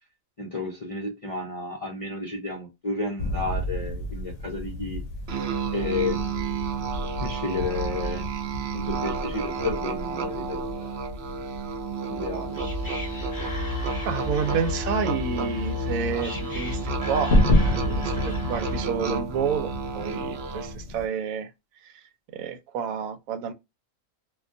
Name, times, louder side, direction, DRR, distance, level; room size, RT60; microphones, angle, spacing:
voice 1, 0.4-5.0 5.7-6.3 7.2-8.3 8.7-10.9 12.1-12.6, left 3 dB, 45° left, 0.4 m, -32 dB
sound 1, 3.2-21.1, left 1 dB, 70° left, 0.8 m, -31 dB
Musical instrument, 5.3-20.8, right 5 dB, 60° right, 0.7 m, -32 dB
Whispering, 12.1-19.1, left 3 dB, 20° left, 0.8 m, -33 dB
voice 2, 14.0-21.5 21.8-22.0 22.3-23.5, right 7 dB, 85° right, 1.0 m, -30 dB
2.4 x 2.2 x 2.5 m
omnidirectional pair, 1.4 m